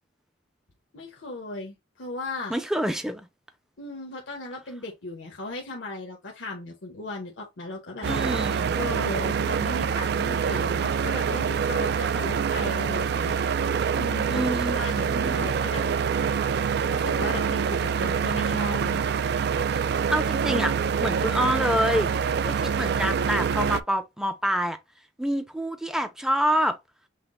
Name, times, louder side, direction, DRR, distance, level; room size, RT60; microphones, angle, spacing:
voice 1, 0.9-2.5 3.8-8.1 8.7-13.4 14.0-15.9 16.9-19.0, left 2 dB, 75° left, 0.9 m, -36 dB
voice 2, 2.5-3.3 8.0-8.8 14.3-14.8 15.1-15.5 20.1-20.7 21.0-22.1 22.4-24.8 25.2-26.8, equal, 5° right, 0.5 m, -27 dB
sound 1, 8.0-23.8, right 6 dB, 55° right, 0.3 m, -25 dB
5.7 x 2.1 x 3.7 m
head